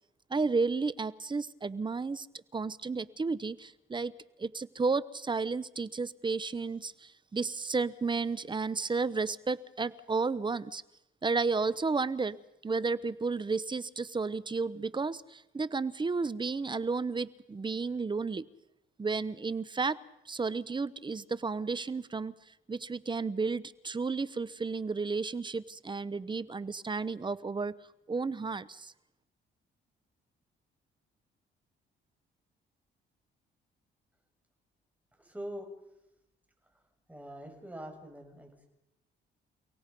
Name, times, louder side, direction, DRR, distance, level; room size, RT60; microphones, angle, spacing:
voice 1, 0.3-2.3 2.5-4.1 4.4-10.8 11.2-12.4 12.6-18.5 19.0-20.0 20.3-22.4 22.7-27.7 28.1-28.9, right 4 dB, 25° right, 18 dB, 0.9 m, -32 dB
voice 2, 35.2-35.7 37.1-38.7, right 1 dB, 5° right, 3 dB, 6.2 m, -43 dB
30.0 x 17.5 x 5.4 m, 0.87 s
cardioid pair, 90°, 20 cm